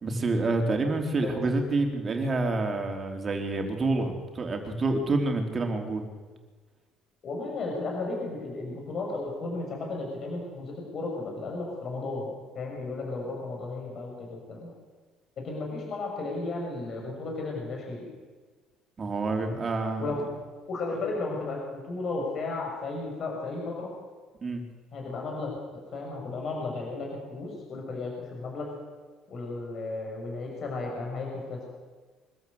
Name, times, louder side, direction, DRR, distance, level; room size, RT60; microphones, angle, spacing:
voice 1, 0.0-6.0 19.0-20.1 24.4-24.6, right 2 dB, 30° right, 3 dB, 3.8 m, -28 dB
voice 2, 7.2-14.7 15.4-18.1 19.4-19.6 20.0-20.2 20.7-23.9 24.9-25.6 25.9-28.7 29.3-31.6, left 3 dB, 50° left, 0 dB, 6.3 m, -34 dB
24.5 x 13.0 x 8.1 m, 1.4 s
cardioid pair, 115°, 0 cm